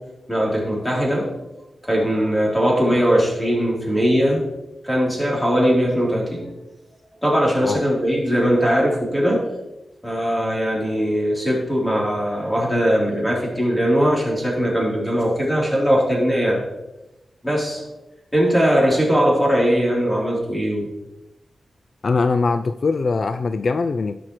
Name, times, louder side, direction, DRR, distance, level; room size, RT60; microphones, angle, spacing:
voice 1, 0.3-1.3 1.8-4.5 4.8-6.5 7.2-9.4 10.0-16.6 17.4-17.9 18.3-20.9, equal, 10° left, -5 dB, 3.7 m, -20 dB
voice 2, 22.0-24.2, left 4 dB, 50° left, 10 dB, 0.3 m, -21 dB
17.0 x 6.0 x 3.2 m, 0.99 s
wide cardioid pair, 120°, 0 cm